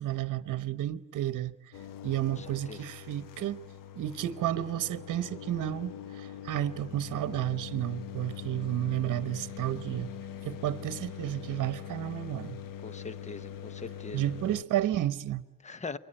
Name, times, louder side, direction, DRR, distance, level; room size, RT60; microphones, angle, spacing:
voice 1, 0.0-1.6 2.0-3.6 3.9-10.1 10.4-12.6 14.1-15.5, right 12 dB, 65° right, 1.1 m, -32 dB
sound 1, 1.7-14.6, left 9 dB, 75° left, 1.1 m, -43 dB
voice 2, 2.4-2.8 12.8-14.3 15.6-16.0, left 4 dB, 20° left, 0.9 m, -41 dB
28.5 x 23.5 x 9.0 m
cardioid pair, 130°, 33 cm